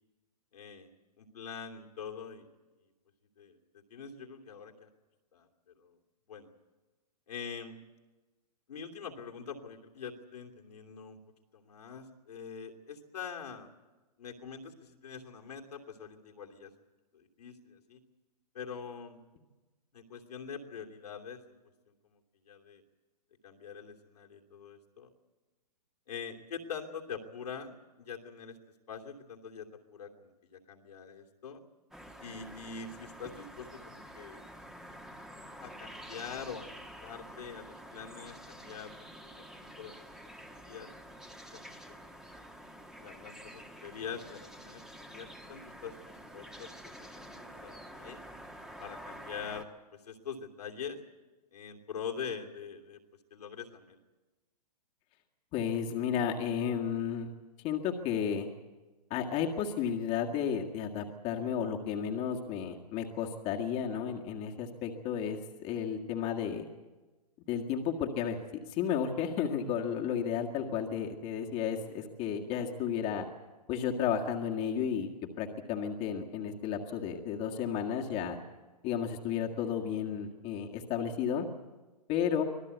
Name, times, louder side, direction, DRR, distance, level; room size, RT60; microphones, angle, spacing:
voice 1, 0.5-0.9 1.2-2.5 3.4-3.6 3.9-4.9 5.3-5.5 5.8-6.0 6.3-6.5 7.3-7.8 8.7-11.2 11.5-13.7 14.2-16.7 17.1-18.0 18.5-19.2 19.9-21.4 22.1-22.2 22.5-22.8 23.4-25.1 26.1-28.6 28.9-31.6 32.2-34.4 35.6-36.6 37.0-39.4 39.8-40.2 40.6-40.9 41.3-42.4 43.0-45.9 46.3-46.9 47.4-48.2 48.8-49.7 50.0-51.0 51.5-53.0 53.3-54.0, left 6 dB, 70° left, 1 dB, 2.9 m, -44 dB
sound 1, 31.9-49.6, equal, ahead, 1.5 m, -49 dB
voice 2, 55.5-57.3 57.6-58.5 59.1-66.7 67.5-68.4 68.7-73.3 73.7-78.4 78.8-81.5 82.1-82.4, left 8 dB, 30° left, 1 dB, 1.8 m, -33 dB
25.0 x 17.5 x 8.2 m, 1.2 s
hypercardioid pair, 130°, 21 cm